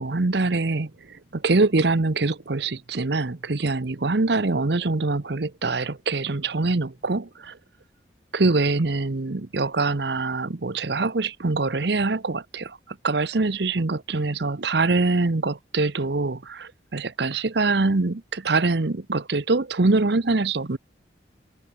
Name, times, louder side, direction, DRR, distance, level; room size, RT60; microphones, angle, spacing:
voice 1, 0.0-7.6 8.3-20.8, right 3 dB, 65° right, 0.9 m, -24 dB
open air
head